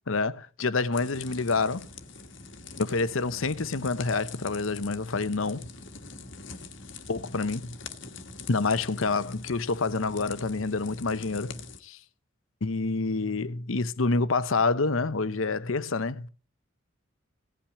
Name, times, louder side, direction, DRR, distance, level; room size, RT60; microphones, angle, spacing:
voice 1, 0.1-1.9 2.8-5.7 7.1-7.7 8.5-11.6 11.8-12.0 12.6-16.3, left 3 dB, 80° left, 0.8 m, -27 dB
sound 1, 0.9-11.8, left 4 dB, 65° left, 1.4 m, -44 dB
16.5 x 5.9 x 8.4 m
head